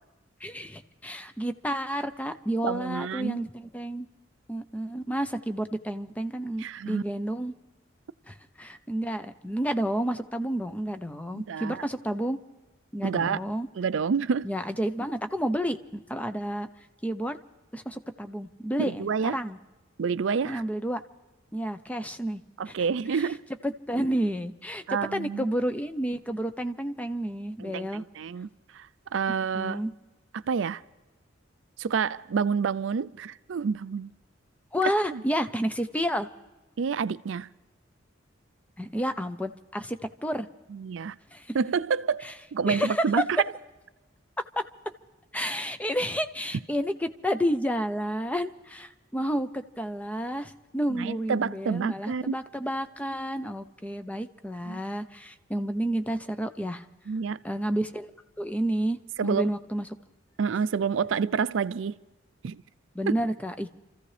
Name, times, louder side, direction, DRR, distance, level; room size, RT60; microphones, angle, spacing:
voice 1, 0.4-4.1 4.5-7.5 8.3-12.4 12.9-13.7 14.4-16.7 17.0-17.4 17.7-19.6 20.4-21.0 21.5-22.4 22.7-22.8 23.1-23.3 23.6-24.8 25.1-28.0 29.5-29.9 34.7-36.3 38.8-40.5 41.3-41.5 42.2-42.3 42.7-43.1 44.4-44.6 45.3-56.8 57.4-58.1 58.4-59.9 62.9-63.7, equal, 5° left, 0.7 m, -30 dB
voice 2, 2.6-3.4 6.6-7.0 11.3-11.8 13.0-13.4 13.8-14.5 18.8-19.4 20.0-20.6 22.6-23.4 24.9-25.4 27.6-28.5 28.7-29.8 30.3-30.8 31.8-34.1 35.1-35.2 36.8-37.5 40.7-41.1 41.5-43.4 50.9-52.4 54.7-54.8 57.1-57.4 59.2-59.5 60.4-62.0 62.4-62.6 63.1-63.2, right 6 dB, 70° right, 0.4 m, -28 dB
29.0 x 15.0 x 3.3 m
head